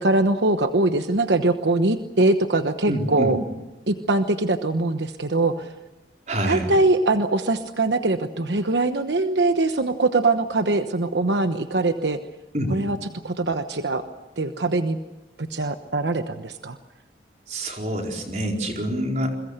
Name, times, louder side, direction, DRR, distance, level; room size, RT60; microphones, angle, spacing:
voice 1, 0.0-3.4 3.9-5.7 6.5-12.2 12.7-13.0 13.2-14.0 14.4-15.0 15.4-16.8, right 2 dB, 85° right, 8 dB, 1.1 m, -22 dB
voice 2, 2.8-3.3 6.3-6.7 12.5-12.8 17.5-19.3, equal, 40° right, 1 dB, 4.5 m, -26 dB
29.0 x 22.5 x 6.7 m, 0.99 s
head